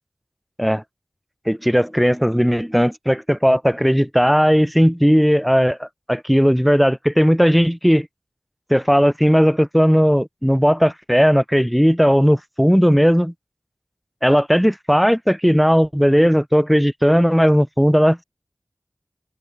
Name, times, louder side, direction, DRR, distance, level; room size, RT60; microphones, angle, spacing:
voice 1, 1.5-8.1 8.7-13.3 14.2-18.2, equal, ahead, 3.7 m, -16 dB
wide cardioid pair, 60°, 0 cm